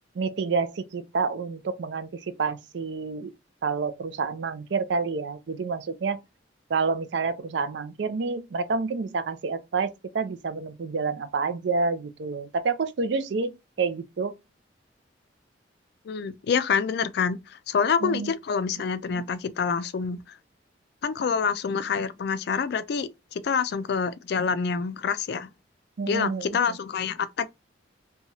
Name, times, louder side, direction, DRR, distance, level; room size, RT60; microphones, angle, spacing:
voice 1, 0.1-3.3 3.6-6.2 6.7-13.5 13.8-14.3 18.0-18.3 19.1-19.2 26.0-26.8, right 4 dB, 65° right, 0.4 m, -28 dB
voice 2, 16.1-20.2 21.0-25.5 26.1-27.5, left 6 dB, 55° left, 0.3 m, -27 dB
2.9 x 2.3 x 2.7 m
head